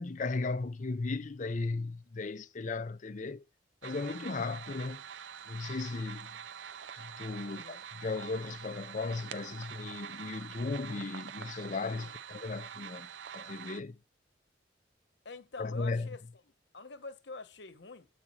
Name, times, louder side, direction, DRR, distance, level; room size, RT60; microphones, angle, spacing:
voice 1, 0.0-3.4 3.8-5.0 5.5-6.4 7.0-13.1 13.3-14.0 15.6-16.1, left 3 dB, 40° left, 0.5 m, -36 dB
sound 1, 3.8-13.8, right 8 dB, 80° right, 0.5 m, -46 dB
voice 2, 7.4-7.8 9.5-9.6 11.9-12.1 15.2-18.1, left 3 dB, 70° left, 1.0 m, -47 dB
8.3 x 4.9 x 4.3 m
head